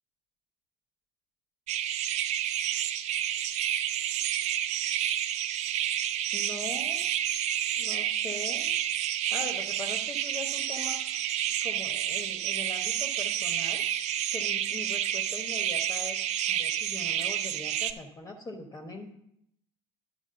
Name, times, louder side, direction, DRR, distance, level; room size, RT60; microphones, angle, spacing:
sound 1, 1.7-17.9, right 11 dB, 55° right, 0.5 m, -30 dB
voice 1, 6.3-7.0 7.8-8.7 9.3-11.0 11.6-16.2 16.5-19.1, left 2 dB, 20° left, 3 dB, 1.1 m, -41 dB
11.0 x 4.5 x 5.7 m, 0.77 s
hypercardioid pair, 80°, 14 cm